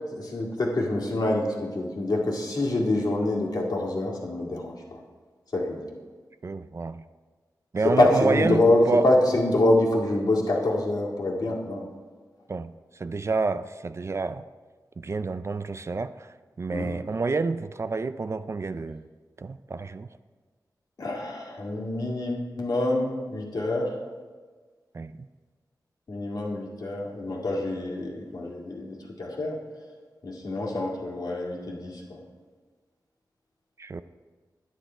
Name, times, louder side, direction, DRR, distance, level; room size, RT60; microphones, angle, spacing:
voice 1, 0.1-5.0 5.5-5.8 7.8-11.8 16.7-16.9 21.0-23.9 26.1-29.6 30.2-32.2, left 1 dB, 65° left, 2.0 m, -26 dB
voice 2, 6.4-7.0 7.7-9.1 12.5-14.4 15.0-19.1 19.4-20.1 24.9-25.3 33.8-34.0, right 3 dB, 40° right, 0.3 m, -29 dB
9.8 x 9.1 x 4.4 m
wide cardioid pair, 95°, 7 cm